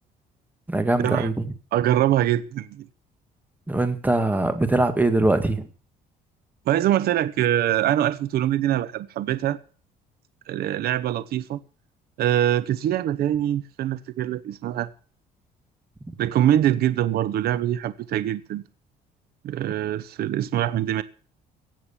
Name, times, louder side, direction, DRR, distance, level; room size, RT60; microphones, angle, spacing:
voice 1, 0.7-1.5 3.7-5.6, right 2 dB, 10° right, 1.9 m, -22 dB
voice 2, 1.7-2.9 6.7-9.6 10.5-11.6 12.2-14.9 16.2-18.6 19.4-21.0, right 12 dB, 65° right, 0.9 m, -23 dB
16.5 x 7.9 x 7.2 m
cardioid pair, 110°, 17 cm